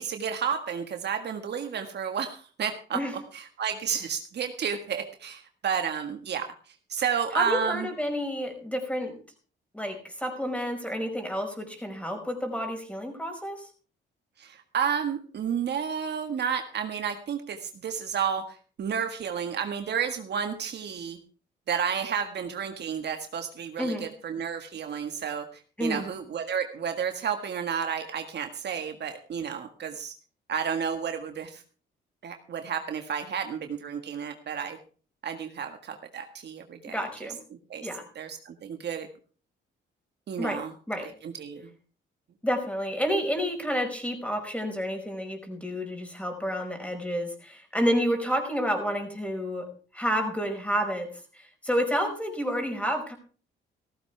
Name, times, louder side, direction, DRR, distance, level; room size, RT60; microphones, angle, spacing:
voice 1, 0.0-3.0 3.3-6.5 6.9-7.9 14.4-21.2 21.7-25.5 25.8-30.1 30.5-31.6 32.2-34.8 35.2-37.3 37.7-37.9 38.1-39.1 40.3-40.7 41.0-41.7, right 7 dB, 60° right, 6 dB, 1.7 m, -31 dB
voice 2, 7.3-9.2 9.7-13.7 23.8-24.1 25.8-26.1 36.9-37.4 37.8-38.1 40.4-41.1 42.4-53.2, equal, 5° left, 4 dB, 5.2 m, -30 dB
15.5 x 14.0 x 3.4 m, 0.39 s
cardioid pair, 90°, 20 cm